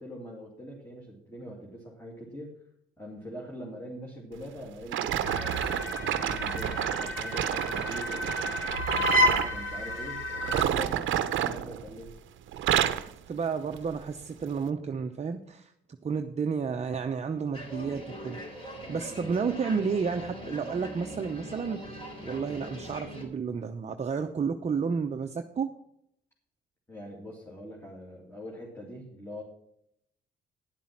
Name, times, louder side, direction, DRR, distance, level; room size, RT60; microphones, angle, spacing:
voice 1, 0.0-2.5 3.0-8.6 9.0-12.1 19.1-19.4 26.9-29.4, equal, 10° left, -2 dB, 2.6 m, -43 dB
sound 1, 4.9-9.6 10.4-12.2 12.5-13.1 13.7-13.9 14.6-14.7, right 11 dB, 75° right, 0.7 m, -29 dB
sound 2, 5.2-10.6, left 1 dB, 75° left, 1.9 m, -30 dB
voice 2, 13.0-15.7 16.0-25.7, right 5 dB, 35° right, 5 dB, 0.7 m, -32 dB
sound 3, 17.5-23.2, equal, 30° left, 3.9 m, -41 dB
10.5 x 7.3 x 5.9 m, 0.75 s
cardioid pair, 90°, 20 cm